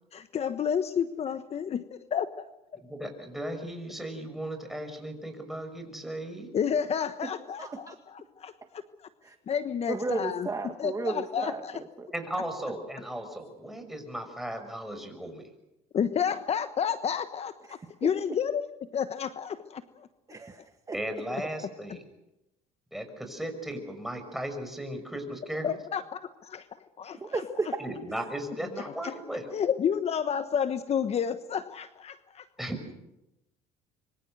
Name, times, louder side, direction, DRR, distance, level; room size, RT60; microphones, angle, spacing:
voice 1, 0.1-2.4 6.5-8.5 9.5-10.5 10.8-11.8 15.9-18.7 18.9-20.1 25.6-26.7 27.0-27.2 29.0-29.1 29.5-32.5, left 8 dB, 45° left, 11 dB, 1.2 m, -30 dB
voice 2, 2.8-6.5 12.1-15.4 20.9-22.0 22.9-25.7 27.8-29.5 32.6-32.8, right 1 dB, ahead, 5 dB, 6.4 m, -36 dB
voice 3, 7.6-8.0 9.2-9.4 9.9-12.1 17.7-18.1 20.3-21.0 27.1-27.9, right 3 dB, 20° right, 5 dB, 1.9 m, -34 dB
26.5 x 24.0 x 6.6 m, 0.92 s
supercardioid pair, 90°, 15 cm